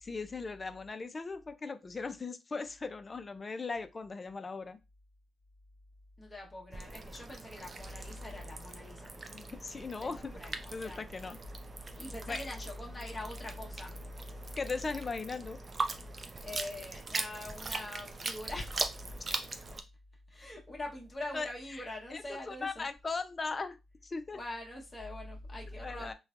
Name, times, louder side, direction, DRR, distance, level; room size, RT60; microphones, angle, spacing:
voice 1, 0.1-4.8 9.3-10.3 10.7-11.4 12.3-12.4 14.6-15.6 21.3-21.8 22.1-23.8 24.0-24.4 25.8-26.1, left 4 dB, 35° left, 0.4 m, -38 dB
voice 2, 6.2-9.1 10.0-11.1 12.0-13.9 16.4-19.1 20.3-22.9 24.3-26.1, left 1 dB, 20° left, 1.0 m, -43 dB
sound 1, 6.7-19.8, right 3 dB, 40° right, 0.5 m, -41 dB
3.1 x 2.2 x 2.4 m
cardioid pair, 75°, 0 cm